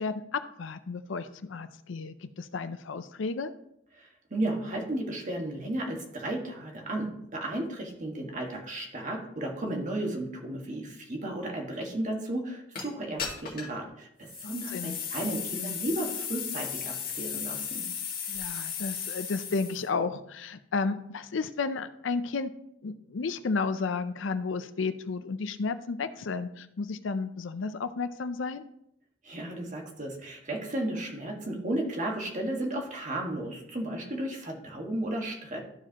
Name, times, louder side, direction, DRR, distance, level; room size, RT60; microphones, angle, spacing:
voice 1, 0.0-3.5 14.4-15.0 18.3-22.5 22.8-28.6, left 4 dB, 75° left, 11 dB, 0.5 m, -32 dB
voice 2, 3.9-17.8 29.2-35.6, right 1 dB, 40° right, 0 dB, 1.6 m, -34 dB
sound 1, 12.8-12.9 13.2-13.8 14.3-19.9, left 7 dB, 50° left, 1.8 m, -35 dB
13.5 x 4.9 x 2.9 m, 0.76 s
head